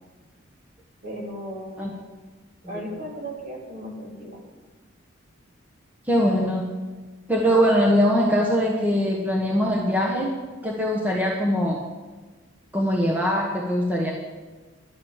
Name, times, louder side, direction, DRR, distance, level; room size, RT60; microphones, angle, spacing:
voice 1, 1.0-2.0 2.7-4.4, equal, 45° right, -2 dB, 3.3 m, -36 dB
voice 2, 6.0-6.6 7.3-10.3 10.6-11.8 12.7-14.1, equal, 10° right, -2 dB, 1.3 m, -22 dB
12.0 x 9.0 x 7.3 m, 1.3 s
head